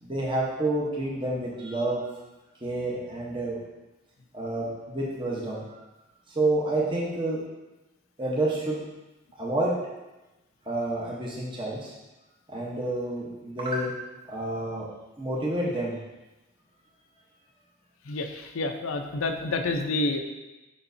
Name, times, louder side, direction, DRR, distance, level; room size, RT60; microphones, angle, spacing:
voice 1, 0.0-2.1 2.6-3.6 4.3-5.8 6.3-7.4 8.2-8.8 9.4-9.7 10.7-11.9 12.5-13.9 14.3-14.9 15.2-16.0, right 2 dB, 25° right, -5 dB, 0.9 m, -29 dB
voice 2, 18.0-20.2, left 2 dB, 90° left, 6 dB, 0.6 m, -28 dB
7.0 x 5.3 x 2.6 m, 1.1 s
head